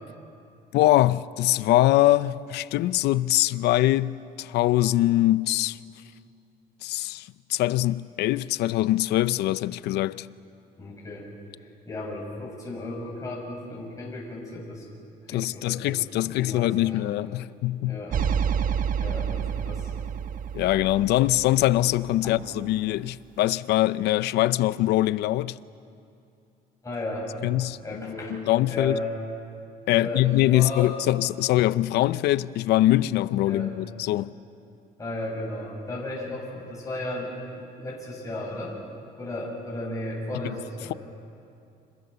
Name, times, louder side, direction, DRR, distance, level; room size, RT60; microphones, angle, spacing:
voice 1, 0.7-5.8 6.8-10.3 15.3-18.0 20.5-25.6 27.4-29.0 29.9-34.3 40.4-40.6, left 15 dB, 80° left, 0.7 m, -23 dB
voice 2, 10.8-11.3 11.9-14.8 15.3-17.0 17.8-18.2 19.0-19.9 22.2-22.4 26.8-27.3 27.8-28.4 28.7-29.1 30.0-30.9 33.5-33.7 35.0-38.8 39.2-41.0, left 1 dB, 20° left, 7.4 m, -34 dB
sound 1, 18.1-22.4, right 7 dB, 55° right, 1.1 m, -29 dB
30.0 x 26.5 x 6.9 m
cardioid pair, 110°, 17 cm